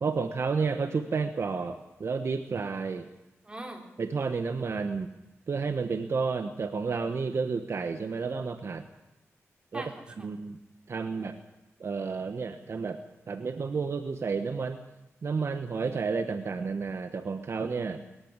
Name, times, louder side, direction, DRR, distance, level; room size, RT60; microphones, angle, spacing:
voice 1, 0.0-3.1 4.0-5.1 5.5-8.9 9.7-9.8 10.2-10.6 10.9-11.4 11.8-13.0 13.3-14.8 15.2-18.0, right 5 dB, 60° right, 7 dB, 1.2 m, -31 dB
voice 2, 3.4-3.9 9.7-10.3 10.9-11.3 17.8-18.1, right 1 dB, 20° right, 2 dB, 4.1 m, -43 dB
22.0 x 14.0 x 8.9 m, 0.99 s
cardioid pair, 85°, 5 cm